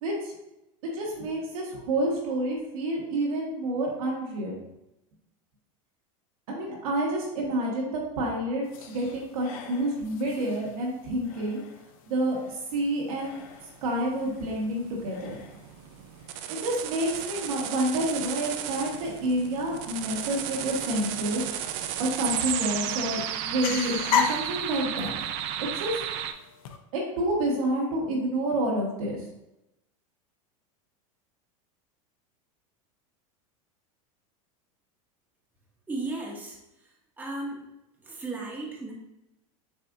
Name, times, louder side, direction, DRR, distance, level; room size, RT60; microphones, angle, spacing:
voice 1, 0.0-0.3 0.8-4.5 6.5-11.6 12.1-12.4 12.7-13.4 13.8-15.4 16.5-21.4 22.0-25.1 25.6-26.0 26.9-29.2, right 1 dB, 85° right, -2 dB, 1.4 m, -29 dB
sound 1, 8.6-26.8, left 7 dB, 75° left, 0.6 m, -38 dB
sound 2, 13.4-26.3, right 10 dB, 55° right, 0.4 m, -34 dB
voice 2, 35.9-36.6 36.8-37.7 38.0-38.9, right 2 dB, 10° right, -2 dB, 0.9 m, -35 dB
6.6 x 2.5 x 2.6 m, 0.90 s
supercardioid pair, 130°, 18 cm